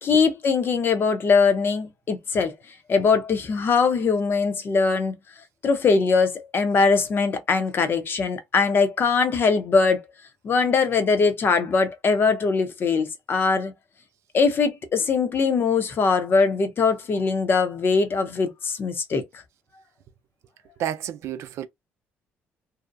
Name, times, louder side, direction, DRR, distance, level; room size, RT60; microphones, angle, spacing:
voice 1, 0.0-2.5 2.9-5.2 5.6-10.0 10.4-13.7 14.3-19.2, left 4 dB, 50° left, 0.7 m, -21 dB
voice 2, 20.8-21.7, right 11 dB, 75° right, 0.4 m, -30 dB
2.7 x 2.1 x 2.5 m
supercardioid pair, 80°, 5 cm